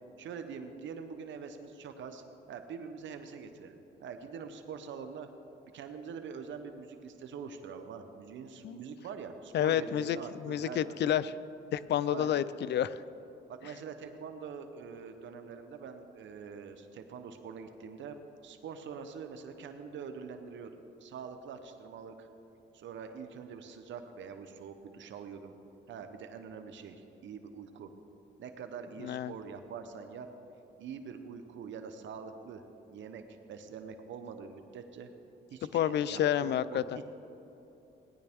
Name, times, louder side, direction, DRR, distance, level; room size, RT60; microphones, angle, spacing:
voice 1, 0.2-5.3 5.7-11.0 12.1-12.4 13.5-18.2 18.4-22.3 22.7-25.5 25.9-27.9 28.4-30.3 30.8-32.6 32.9-33.2 33.5-35.1 35.5-37.0, right 6 dB, 70° right, 7 dB, 0.9 m, -44 dB
voice 2, 9.5-10.2 10.4-11.3 11.7-13.0 29.0-29.3 35.7-36.8, left 10 dB, 60° left, 16 dB, 0.5 m, -29 dB
17.5 x 10.5 x 3.6 m, 2.9 s
cardioid pair, 90°, 20 cm